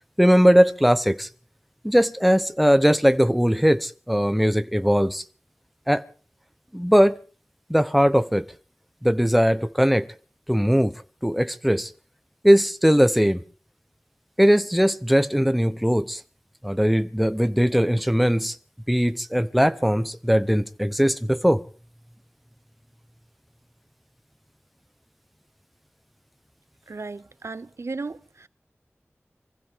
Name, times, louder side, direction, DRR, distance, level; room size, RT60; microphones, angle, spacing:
voice 1, 0.2-1.3 1.8-5.2 5.9-6.0 6.7-7.2 7.7-8.5 9.0-10.1 10.5-11.9 12.4-13.4 14.4-16.2 16.6-18.6 18.9-21.6, equal, ahead, 1.0 m, -20 dB
voice 2, 26.9-28.5, right 3 dB, 80° right, 0.7 m, -35 dB
25.0 x 15.5 x 3.7 m
wide cardioid pair, 60°, 5 cm